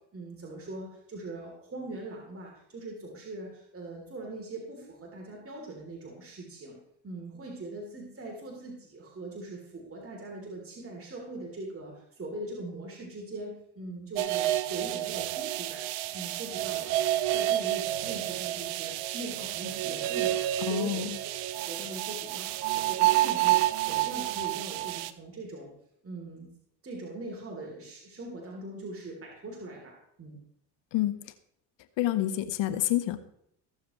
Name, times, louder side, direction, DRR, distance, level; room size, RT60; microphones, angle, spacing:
voice 1, 0.1-6.8 7.0-17.0 17.3-21.1 21.6-25.7 26.0-26.5 26.8-30.4, right 2 dB, 25° right, -1 dB, 3.2 m, -41 dB
sound 1, 14.2-25.1, right 14 dB, 80° right, 0.8 m, -29 dB
voice 2, 20.6-21.2 30.9-31.2 32.0-33.2, left 13 dB, 60° left, 11 dB, 1.1 m, -28 dB
21.0 x 7.1 x 3.1 m, 0.72 s
supercardioid pair, 80°, 49 cm